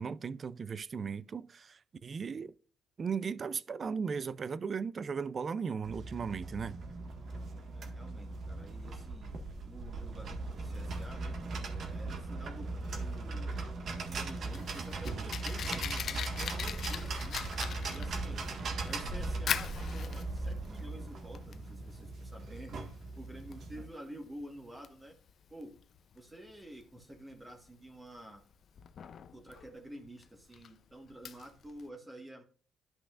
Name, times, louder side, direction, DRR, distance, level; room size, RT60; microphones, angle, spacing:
voice 1, 0.0-2.5 3.0-6.8, right 6 dB, 45° right, 0.5 m, -37 dB
sound 1, 5.8-23.9, right 3 dB, 60° right, 1.7 m, -39 dB
voice 2, 7.7-11.4 11.9-13.6 13.9-17.4 17.9-18.5 18.8-22.9 23.1-25.1 25.5-25.8 26.1-28.4 29.3-32.4, right 1 dB, 20° right, 1.7 m, -50 dB
Fire, 14.2-31.9, left 8 dB, 60° left, 0.6 m, -43 dB
11.5 x 5.8 x 2.5 m
cardioid pair, 90°, 0 cm